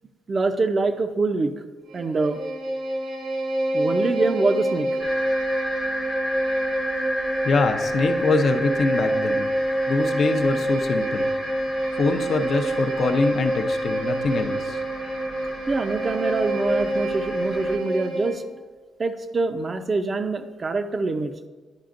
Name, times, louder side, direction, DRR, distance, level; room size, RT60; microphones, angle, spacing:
voice 1, 0.3-1.5 1.9-2.4 3.7-4.9 15.7-18.4 19.0-21.3, right 3 dB, 35° right, 8 dB, 0.6 m, -24 dB
Bowed string instrument, 1.9-18.5, right 1 dB, 85° right, 2.2 m, -26 dB
sound 1, 5.0-17.8, left 1 dB, 15° left, 0.8 m, -34 dB
voice 2, 7.4-9.5 9.9-11.3 12.0-14.8, left 4 dB, 55° left, 6 dB, 0.6 m, -24 dB
10.5 x 5.0 x 2.5 m, 1.3 s
cardioid pair, 90°, 0 cm